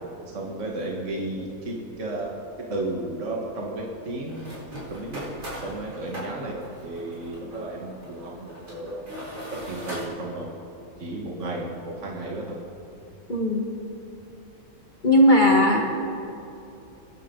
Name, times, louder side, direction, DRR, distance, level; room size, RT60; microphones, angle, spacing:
voice 1, 0.3-2.3 2.7-4.5 4.9-5.2 5.6-9.0 9.7-10.5 11.0-12.5, right 2 dB, 55° right, -2 dB, 2.1 m, -33 dB
sound 1, 1.7-1.8 3.0-3.2 3.8-3.9 4.3-10.1, equal, 90° right, 5.2 m, -40 dB
voice 2, 13.3-13.7 15.0-15.8, equal, 35° left, -1 dB, 1.6 m, -17 dB
29.0 x 11.5 x 3.9 m, 2.8 s
omnidirectional pair, 1.6 m